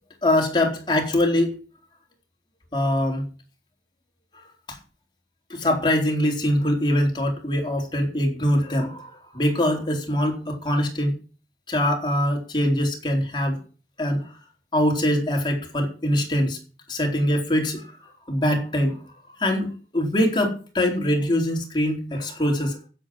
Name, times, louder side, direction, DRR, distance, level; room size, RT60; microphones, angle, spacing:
voice 1, 0.2-1.5 2.7-3.3 4.7-4.8 5.5-11.2 11.7-13.6 14.0-14.3 14.7-16.6 16.9-17.9 18.3-19.0 19.4-22.8, left 1 dB, 25° left, 1 dB, 4.0 m, -23 dB
16.0 x 8.0 x 6.2 m, 0.36 s
head